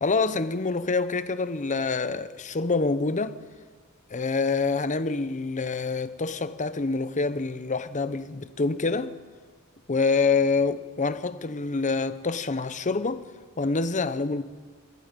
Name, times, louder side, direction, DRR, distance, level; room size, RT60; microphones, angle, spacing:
voice 1, 0.0-3.4 4.1-9.2 9.9-13.3 13.6-14.4, left 4 dB, 35° left, 0.8 m, -26 dB
26.5 x 19.5 x 5.3 m
head